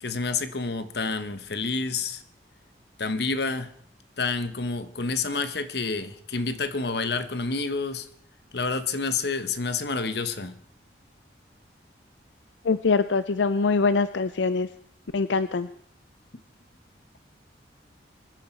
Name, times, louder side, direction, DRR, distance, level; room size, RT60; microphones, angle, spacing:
voice 1, 0.0-2.2 3.0-3.7 4.2-8.1 8.5-10.6, left 4 dB, 65° left, 12 dB, 1.1 m, -29 dB
voice 2, 12.6-14.7 15.1-15.7, left 4 dB, 85° left, 13 dB, 0.5 m, -23 dB
24.5 x 10.0 x 4.5 m, 0.65 s
head